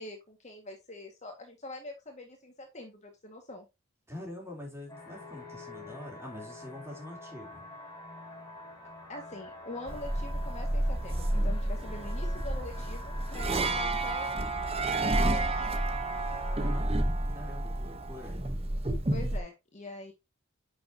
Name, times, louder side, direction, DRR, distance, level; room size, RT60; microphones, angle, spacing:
voice 1, 0.0-3.7 9.1-14.3 14.9-15.8 19.1-20.1, left 2 dB, 30° left, 1.9 m, -44 dB
voice 2, 4.1-7.7 17.3-18.4, left 1 dB, 10° right, 3.5 m, -45 dB
sound 1, 4.9-16.8, left 1 dB, 15° left, 5.7 m, -46 dB
sound 2, 9.9-19.4, right 2 dB, 30° right, 1.0 m, -30 dB
10.0 x 6.7 x 2.8 m
head